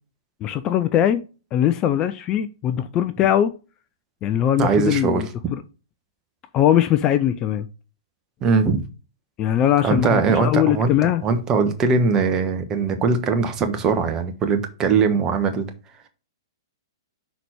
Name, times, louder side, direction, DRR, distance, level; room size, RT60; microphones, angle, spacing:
voice 1, 0.4-1.2 1.5-3.5 4.2-5.6 6.5-7.7 9.4-11.2, left 11 dB, 30° left, 0.5 m, -20 dB
voice 2, 4.6-5.2 8.4-8.8 9.8-10.9 11.2-15.7, right 4 dB, 25° right, 1.2 m, -20 dB
5.9 x 4.2 x 4.8 m
hypercardioid pair, 115°, 2 cm